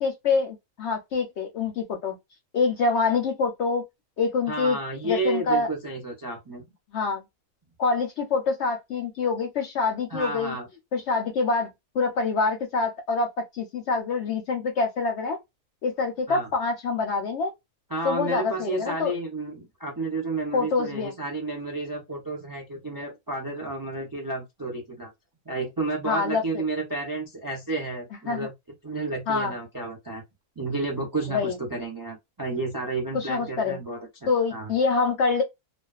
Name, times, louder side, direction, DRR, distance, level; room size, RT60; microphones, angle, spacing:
voice 1, 0.0-2.2 2.5-3.9 4.2-4.8 5.0-5.7 6.9-7.2 7.8-10.5 10.9-11.7 11.9-15.4 15.8-17.5 18.0-19.1 20.5-21.1 26.0-26.4 28.3-28.5 29.3-29.5 31.3-31.6 33.1-33.8 34.3-35.4, left 4 dB, 65° left, 0.7 m, -25 dB
voice 2, 4.5-6.6 10.1-10.7 16.3-16.5 17.9-25.1 25.5-28.5 28.8-30.2 30.6-34.7, right 2 dB, 30° right, 0.4 m, -31 dB
2.5 x 2.2 x 2.3 m
omnidirectional pair, 1.5 m